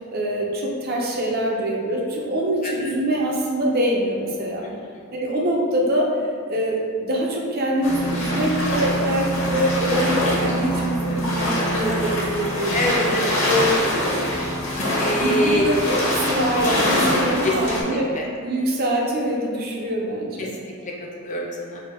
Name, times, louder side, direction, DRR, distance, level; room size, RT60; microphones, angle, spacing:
voice 1, 0.1-4.6 5.1-13.1 15.2-20.5, right 1 dB, 45° right, -2 dB, 0.6 m, -24 dB
sound 1, 7.8-17.8, equal, 60° left, 0.9 m, -23 dB
voice 2, 11.6-12.0 12.7-14.1 15.0-15.7 17.4-18.3 20.4-21.8, left 1 dB, 35° left, -2 dB, 0.5 m, -25 dB
3.5 x 2.2 x 4.3 m, 2.3 s
head